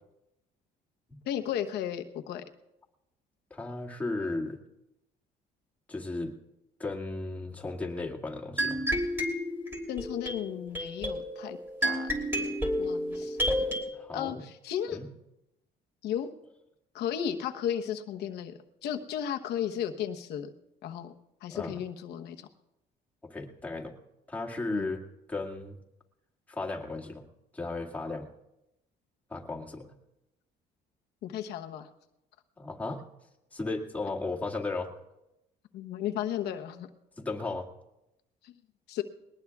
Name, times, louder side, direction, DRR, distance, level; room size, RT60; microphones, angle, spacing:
voice 1, 1.2-2.4 9.9-12.1 12.4-13.4 14.1-15.0 16.0-16.3 16.9-18.5 18.8-20.5 20.8-21.1 21.4-22.5 24.7-24.9 31.2-31.9 35.7-36.9 38.4-38.5 38.9-39.0, left 9 dB, 75° left, 5 dB, 1.1 m, -34 dB
voice 2, 3.5-4.6 5.9-6.4 6.8-8.8 13.9-14.4 14.9-15.1 21.5-21.8 23.2-23.9 24.3-25.0 25.3-25.8 26.5-27.2 27.5-28.3 29.3-29.9 32.6-33.1 33.5-34.9 37.2-37.7, left 3 dB, 10° left, -2 dB, 2.1 m, -35 dB
sound 1, 8.6-13.8, equal, 15° right, 3.1 m, -31 dB
21.5 x 19.0 x 2.4 m, 0.91 s
cardioid pair, 110°, 17 cm